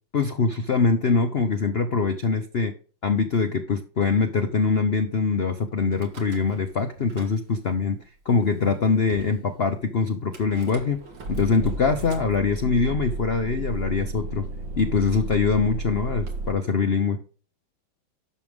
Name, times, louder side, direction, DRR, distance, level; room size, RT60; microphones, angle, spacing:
voice 1, 0.1-2.7 3.0-8.0 8.3-11.0 11.3-14.5 14.8-17.2, left 4 dB, 50° left, 7 dB, 0.7 m, -23 dB
Car / Engine starting / Idling, 5.9-6.7 7.0-7.8 8.4-8.5 8.7-8.8 9.1-9.4 10.3-16.5, right 3 dB, 90° right, 2.5 m, -33 dB
11.0 x 6.4 x 3.5 m, 0.39 s
omnidirectional pair, 2.0 m